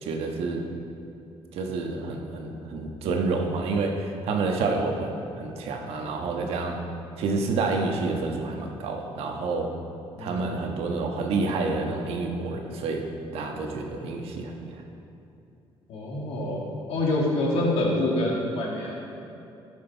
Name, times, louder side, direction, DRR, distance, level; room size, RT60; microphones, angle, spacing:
voice 1, 0.0-0.6 1.5-6.8 7.2-9.7 10.2-13.0 13.3-14.8, right 3 dB, 80° right, 2 dB, 1.2 m, -28 dB
voice 2, 15.9-16.6 16.9-18.9, left 1 dB, 80° left, -3 dB, 2.3 m, -26 dB
15.0 x 6.5 x 4.5 m, 2.7 s
cardioid pair, 175°, 10 cm